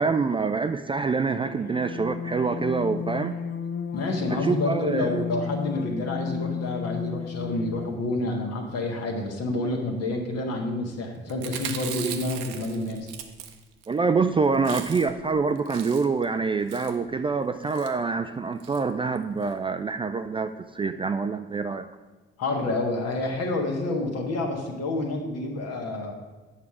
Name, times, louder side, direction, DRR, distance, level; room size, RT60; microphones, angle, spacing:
voice 1, 0.0-3.4 4.3-5.1 13.9-21.9, right 4 dB, 20° right, 8 dB, 0.3 m, -26 dB
sound 1, 1.3-8.1, left 7 dB, 35° left, 0.5 m, -33 dB
voice 2, 3.9-13.1 22.4-26.1, left 2 dB, 55° left, 2 dB, 1.5 m, -28 dB
Chewing mastication, 11.3-13.9 14.2-14.3 14.5-15.2 15.5-16.2 16.7-17.0 17.6-17.9 18.6-18.8 19.1-19.2 19.4-19.5, right 9 dB, 65° right, 0.7 m, -38 dB
8.8 x 5.9 x 4.8 m, 1.2 s
figure-of-eight pair, 40°, 30 cm